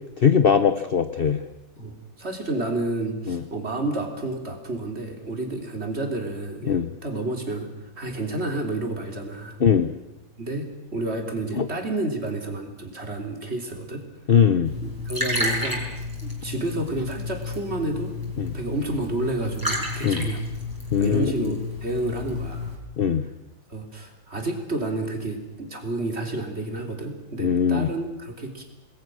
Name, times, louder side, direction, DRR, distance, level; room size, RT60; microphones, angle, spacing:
voice 1, 0.2-1.4 3.3-3.4 6.7-6.9 9.6-9.9 11.6-11.7 14.3-14.7 18.4-18.5 20.0-20.3 20.9-21.5 23.0-23.2 27.4-27.9, left 7 dB, 45° left, 10 dB, 0.7 m, -20 dB
voice 2, 1.8-9.6 10.4-14.0 14.8-15.9 16.2-18.1 18.5-20.4 21.0-22.7 23.7-28.6, right 2 dB, 30° right, 3 dB, 3.6 m, -30 dB
Liquid, 14.6-22.7, left 2 dB, 10° right, 5.5 m, -31 dB
27.5 x 20.5 x 6.3 m, 1.0 s
omnidirectional pair, 2.1 m